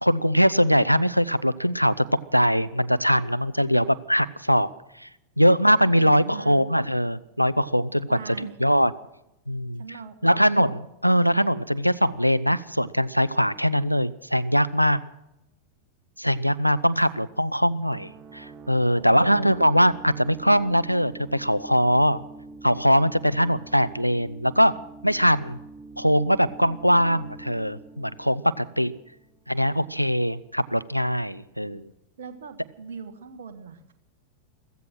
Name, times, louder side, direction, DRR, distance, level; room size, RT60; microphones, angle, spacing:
voice 1, 0.0-2.0 2.3-4.7 5.0-5.1 5.4-8.9 9.5-9.8 10.2-15.0 16.2-22.2 22.6-24.7 25.0-25.6 26.0-28.9 29.5-31.9, equal, 90° right, 18 dB, 0.5 m, -22 dB
voice 2, 6.0-6.6 8.1-8.6 9.8-10.6 18.9-19.4 32.2-33.9, right 6 dB, 60° right, 8 dB, 1.5 m, -40 dB
sound 1, 17.9-29.4, right 3 dB, 35° right, 1.0 m, -44 dB
15.5 x 15.5 x 6.2 m, 0.86 s
figure-of-eight pair, 90°, 0 cm